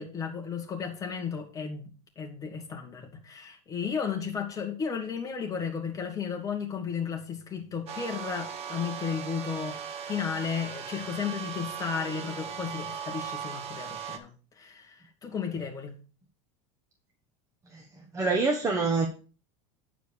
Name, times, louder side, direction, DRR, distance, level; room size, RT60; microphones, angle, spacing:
voice 1, 0.0-14.3 14.6-16.0, left 6 dB, 20° left, 2.2 m, -34 dB
sound 1, 7.9-14.2, right 7 dB, 40° right, 1.5 m, -38 dB
voice 2, 18.1-19.1, right 3 dB, 20° right, 1.2 m, -25 dB
9.2 x 4.9 x 6.8 m
supercardioid pair, 145°, 16 cm